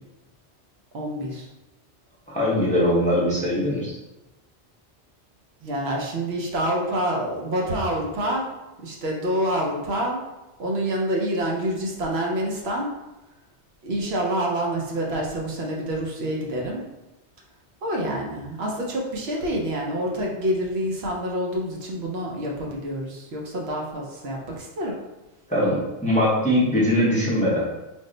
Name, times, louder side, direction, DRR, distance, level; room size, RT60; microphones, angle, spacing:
voice 1, 0.9-1.5 5.6-8.5 8.8-10.2 10.6-12.9 13.8-16.8 17.8-24.9, right 1 dB, 70° right, -1 dB, 0.9 m, -27 dB
voice 2, 2.3-3.9 25.5-27.6, equal, 10° left, -6 dB, 0.6 m, -21 dB
3.5 x 2.0 x 3.8 m, 1.0 s
omnidirectional pair, 1.1 m